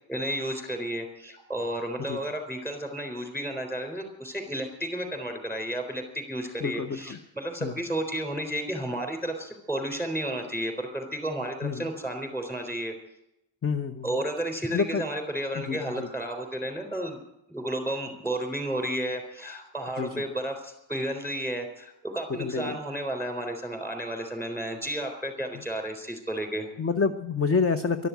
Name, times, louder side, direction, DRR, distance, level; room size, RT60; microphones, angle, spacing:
voice 1, 0.1-12.9 14.0-17.2 17.5-26.7, right 1 dB, 5° left, 5 dB, 3.8 m, -32 dB
voice 2, 6.6-7.2 7.6-7.8 11.6-11.9 13.6-14.1 14.7-15.0 15.7-16.1 20.0-20.2 22.4-22.8 26.8-28.1, left 5 dB, 30° left, 9 dB, 0.8 m, -28 dB
12.5 x 12.0 x 9.2 m, 0.85 s
wide cardioid pair, 145°, 48 cm